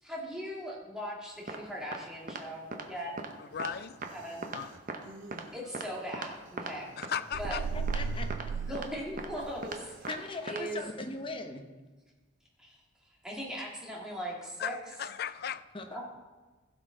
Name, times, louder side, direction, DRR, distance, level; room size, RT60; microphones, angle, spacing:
voice 1, 0.0-3.2 4.1-4.5 5.5-6.9 7.4-7.6 8.7-10.1 10.5-10.8 12.6-14.7 15.9-16.0, equal, 5° right, -4 dB, 1.9 m, -39 dB
sound 1, 1.5-1.6 1.9-2.0 2.3-2.4 2.7-2.8 3.2-3.3 3.6-3.7 4.0-4.1 4.4-4.6 4.9-5.0 5.3-5.4 5.7-5.9 6.1-6.3 6.6-6.7 7.0-7.2 7.4-7.6 7.9-8.0 8.3-8.4 8.7-8.9 9.2-9.3 9.6-9.8 10.0-10.2 10.5-10.6, right 3 dB, 45° right, 0.8 m, -38 dB
voice 2, 3.4-4.0 4.4-4.7 7.0-7.6 8.7-8.8 14.6-15.6, left 8 dB, 50° left, 14 dB, 0.4 m, -37 dB
sound 2, 3.5-10.2, right 2 dB, 70° right, 0.8 m, -55 dB
sound 3, 7.3-9.7, right 5 dB, 85° right, 0.3 m, -35 dB
voice 3, 7.5-8.3 10.1-11.7 15.7-16.0, left 2 dB, 25° left, 5 dB, 0.8 m, -39 dB
15.5 x 6.3 x 3.8 m, 1.3 s
head